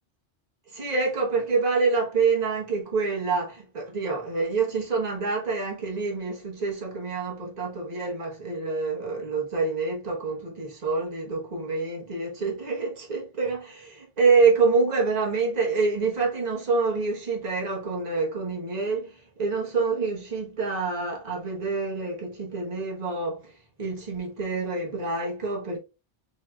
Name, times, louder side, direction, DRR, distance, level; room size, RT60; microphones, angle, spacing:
voice 1, 0.7-23.5 23.8-25.8, right 4 dB, 40° right, 1.3 m, -26 dB
4.8 x 2.9 x 2.3 m
omnidirectional pair, 1.2 m